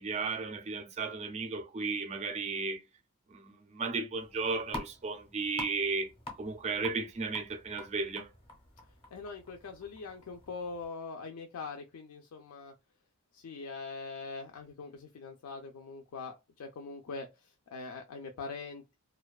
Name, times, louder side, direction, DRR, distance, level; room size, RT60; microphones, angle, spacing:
voice 1, 0.0-2.8 3.3-6.1 6.4-8.3, right 4 dB, 30° right, 0.4 m, -34 dB
sound 1, 4.1-10.9, left 1 dB, 25° left, 0.6 m, -48 dB
voice 2, 9.1-12.7 13.3-19.0, left 4 dB, 85° left, 0.4 m, -43 dB
2.5 x 2.2 x 2.3 m
head